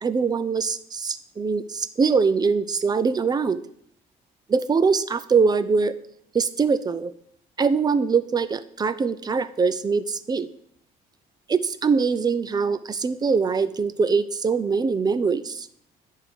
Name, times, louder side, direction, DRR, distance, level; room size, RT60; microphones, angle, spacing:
voice 1, 0.0-3.6 4.5-5.9 6.3-7.1 7.6-10.5 11.5-15.7, right 5 dB, 25° right, 14 dB, 0.5 m, -23 dB
9.8 x 3.7 x 6.8 m, 0.68 s
cardioid pair, 110°, 17 cm